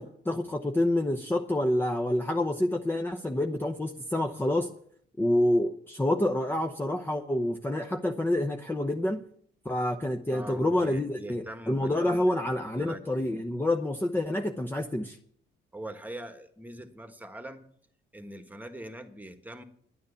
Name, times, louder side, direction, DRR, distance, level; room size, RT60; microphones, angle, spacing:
voice 1, 0.0-4.7 5.2-9.2 9.6-15.2, left 1 dB, 10° left, 4 dB, 0.8 m, -28 dB
voice 2, 10.3-13.3 15.7-17.6 18.1-19.6, right 1 dB, 10° right, 8 dB, 1.5 m, -43 dB
10.5 x 9.5 x 6.9 m, 0.63 s
cardioid pair, 90°, 20 cm